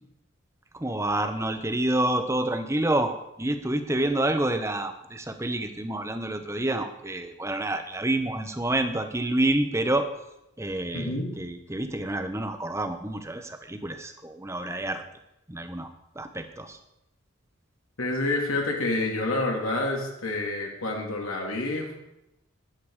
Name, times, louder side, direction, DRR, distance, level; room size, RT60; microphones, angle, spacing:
voice 1, 0.7-10.1 10.6-15.0 15.5-15.9 16.1-16.8, right 1 dB, 15° right, 8 dB, 1.0 m, -28 dB
voice 2, 10.9-11.3 18.0-22.0, left 2 dB, 85° left, 0 dB, 2.9 m, -28 dB
13.5 x 10.5 x 4.9 m, 0.86 s
head